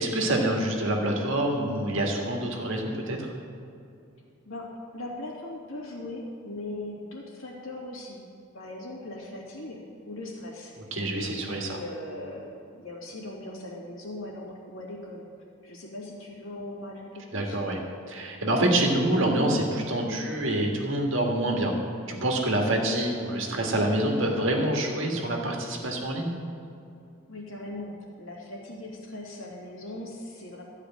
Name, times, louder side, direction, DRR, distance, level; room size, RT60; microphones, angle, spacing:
voice 1, 0.0-3.3 10.9-11.8 17.3-17.8 18.1-21.7 22.1-26.3, right 1 dB, 60° right, 1 dB, 1.7 m, -26 dB
voice 2, 4.9-8.2 8.5-9.8 10.1-10.7 11.2-12.5 12.7-15.2 15.6-17.6 27.3-27.9 28.2-30.6, left 1 dB, 65° left, -3 dB, 2.5 m, -39 dB
13.5 x 4.9 x 9.0 m, 2.6 s
head